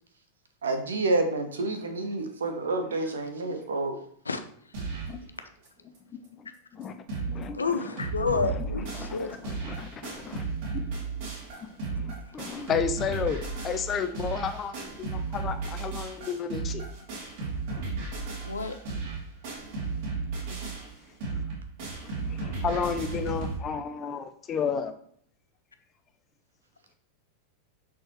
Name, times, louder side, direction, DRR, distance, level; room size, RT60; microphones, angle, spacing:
voice 1, 0.6-4.0, right 2 dB, 70° right, 7 dB, 1.1 m, -28 dB
sound 1, 4.7-5.2 5.6-5.7 5.9-6.0 6.5-6.6 6.8-7.4 7.7-23.6, right 4 dB, 50° right, 2.5 m, -34 dB
voice 2, 6.4-6.9 7.3-7.9 8.4-10.4 10.7-11.1 11.6-16.9 22.2-24.9, left 6 dB, 25° left, 9 dB, 0.7 m, -33 dB
voice 3, 7.5-9.3 18.4-18.7, left 4 dB, 75° left, 9 dB, 0.6 m, -29 dB
6.3 x 6.1 x 3.1 m, 0.64 s
figure-of-eight pair, 90°, 0 cm